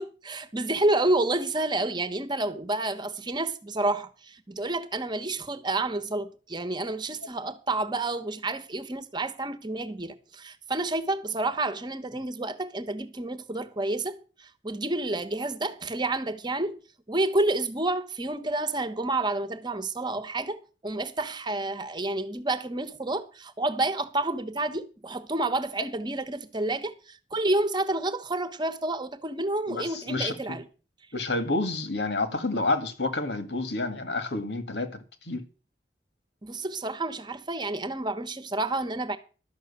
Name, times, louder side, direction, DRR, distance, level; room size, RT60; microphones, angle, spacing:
voice 1, 0.0-16.8 17.1-30.6 36.4-39.2, right 2 dB, 25° right, 1.1 m, -29 dB
voice 2, 29.7-30.6 31.1-35.4, left 2 dB, 75° left, 2.0 m, -29 dB
12.5 x 6.3 x 8.4 m
head